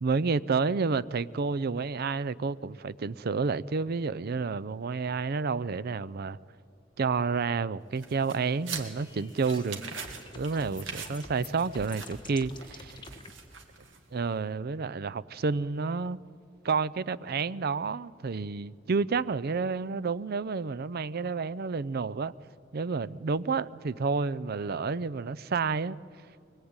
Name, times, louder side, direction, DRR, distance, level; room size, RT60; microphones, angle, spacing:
voice 1, 0.0-6.4 7.0-9.8 10.3-13.0 14.1-16.2 16.6-22.3 22.7-26.0, right 4 dB, 55° right, 0.5 m, -30 dB
sound 1, 8.0-14.2, right 5 dB, 75° right, 2.5 m, -43 dB
sound 2, 9.0-13.3, left 2 dB, 25° left, 1.3 m, -47 dB
23.5 x 21.5 x 8.8 m
head